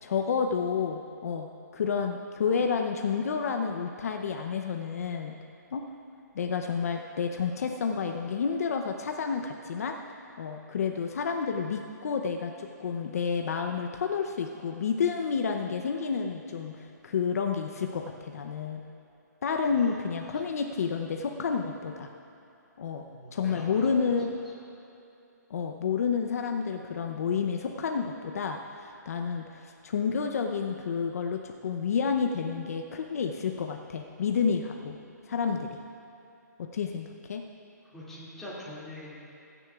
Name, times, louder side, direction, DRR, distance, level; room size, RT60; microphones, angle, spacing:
voice 1, 0.0-1.5 1.7-5.3 5.7-5.8 6.3-10.0 10.4-18.8 19.4-22.1 22.8-23.0 23.3-24.3 25.5-35.0 35.3-35.8 36.7-37.4, left 6 dB, 55° left, 4 dB, 0.7 m, -30 dB
voice 2, 19.7-20.0 20.3-20.5 23.1-24.0 37.8-39.2, left 1 dB, 5° left, -10 dB, 2.4 m, -43 dB
29.0 x 9.9 x 2.4 m, 2.7 s
hypercardioid pair, 165°, 10 cm